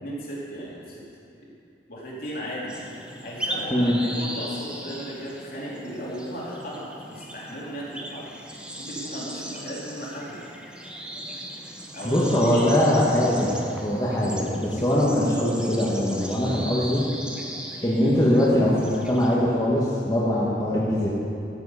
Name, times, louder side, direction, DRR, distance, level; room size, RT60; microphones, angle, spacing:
voice 1, 0.0-1.0 1.4-1.5 1.9-2.8 3.2-8.3 8.8-10.4 11.9-12.2 12.5-12.7, equal, 55° left, -6 dB, 2.8 m, -36 dB
sound 1, 2.7-19.4, right 1 dB, 5° right, 0.8 m, -38 dB
voice 2, 12.0-13.5 13.8-17.0 17.8-21.1, left 1 dB, 20° left, -7 dB, 1.4 m, -22 dB
13.5 x 7.5 x 5.6 m, 2.6 s
head